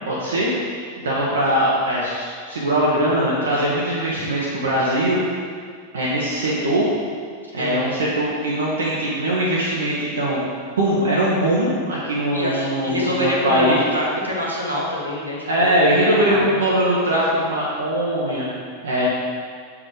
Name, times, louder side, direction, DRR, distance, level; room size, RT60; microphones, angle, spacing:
voice 1, 0.1-5.2 5.9-6.9 7.5-10.4 10.8-13.8 15.5-18.5 18.8-19.1, right 1 dB, 65° right, -6 dB, 1.2 m, -21 dB
voice 2, 12.3-15.7 16.3-16.6, left 1 dB, 85° right, -5 dB, 1.7 m, -25 dB
7.2 x 4.9 x 5.0 m, 2.1 s
figure-of-eight pair, 90°, 0 cm